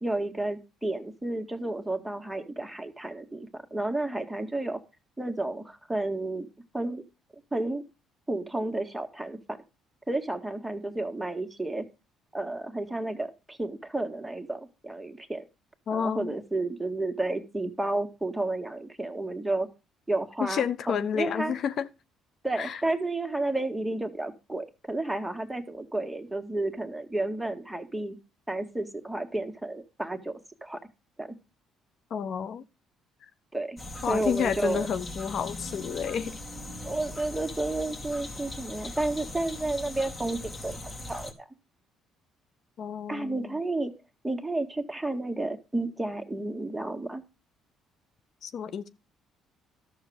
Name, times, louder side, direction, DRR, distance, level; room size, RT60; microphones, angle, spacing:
voice 1, 0.0-4.8 5.2-6.5 6.7-7.0 7.5-7.8 8.3-9.6 10.1-11.9 12.3-15.5 15.9-19.7 20.1-21.5 22.4-28.2 28.5-30.3 30.6-30.8 31.2-31.3 33.5-33.8 34.1-34.9 36.9-41.5 43.1-43.9 44.2-47.2, right 2 dB, 10° right, 1.9 m, -31 dB
voice 2, 15.9-16.4 20.4-21.9 22.6-22.8 32.1-32.6 34.0-36.4 42.8-43.6 48.4-48.9, left 7 dB, 60° left, 1.0 m, -30 dB
sound 1, 33.8-41.3, left 1 dB, 25° left, 2.6 m, -40 dB
12.5 x 6.7 x 5.0 m
supercardioid pair, 80°, 0 cm